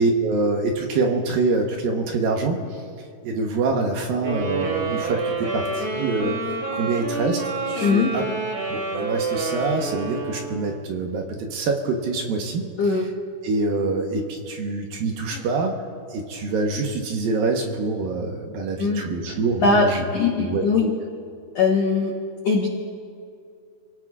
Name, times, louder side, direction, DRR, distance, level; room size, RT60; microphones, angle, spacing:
voice 1, 0.0-2.6 3.2-7.4 7.7-8.2 8.7-12.7 13.4-15.7 16.1-20.0 20.3-20.9, right 3 dB, 70° right, 2 dB, 2.6 m, -25 dB
sound 1, 4.2-10.8, right 3 dB, 45° right, 2.8 m, -28 dB
voice 2, 7.8-8.1 12.8-13.0 15.3-15.4 18.8-19.0 19.3-19.9 20.1-20.9 21.5-22.1 22.4-22.7, left 4 dB, 75° left, -1 dB, 1.5 m, -20 dB
28.0 x 17.5 x 2.5 m, 2.3 s
omnidirectional pair, 4.8 m